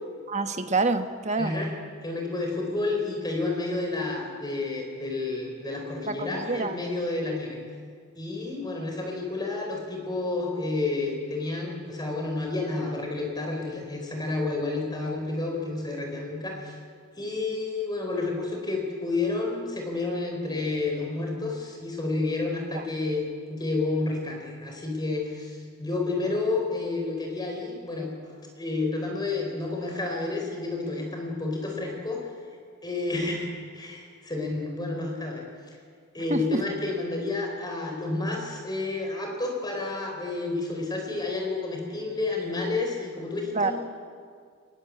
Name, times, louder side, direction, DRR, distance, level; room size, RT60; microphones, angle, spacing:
voice 1, 0.3-1.6 6.1-6.7 22.7-22.8 36.3-36.6 43.5-43.7, right 3 dB, 30° right, 8 dB, 1.1 m, -27 dB
voice 2, 1.4-1.7 2.0-7.6 8.2-16.8 17.1-32.2 32.8-35.4 36.1-43.7, left 3 dB, 20° left, 1 dB, 4.5 m, -30 dB
20.0 x 20.0 x 8.5 m, 2.1 s
head